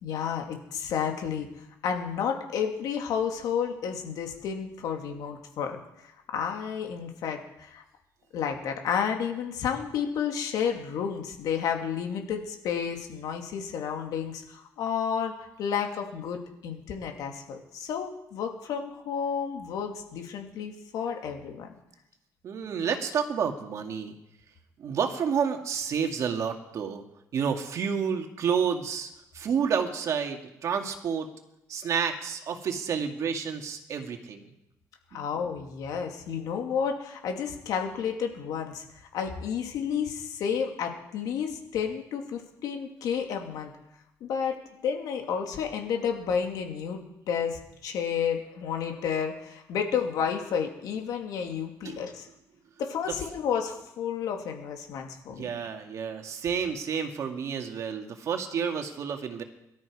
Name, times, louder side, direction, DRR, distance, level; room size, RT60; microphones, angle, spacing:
voice 1, 0.0-1.5 1.8-7.8 8.3-15.3 15.6-21.7 22.7-22.9 35.1-38.8 39.1-43.7 44.2-44.6 44.8-52.3 52.8-55.5, left 7 dB, 75° left, 3 dB, 2.7 m, -31 dB
voice 2, 22.4-24.1 24.8-27.0 27.3-29.1 29.3-31.3 31.7-34.5 35.1-35.2 51.8-52.0 55.4-59.4, right 7 dB, 55° right, 4 dB, 2.1 m, -30 dB
22.5 x 13.0 x 4.9 m, 0.86 s
cardioid pair, 130°, 6 cm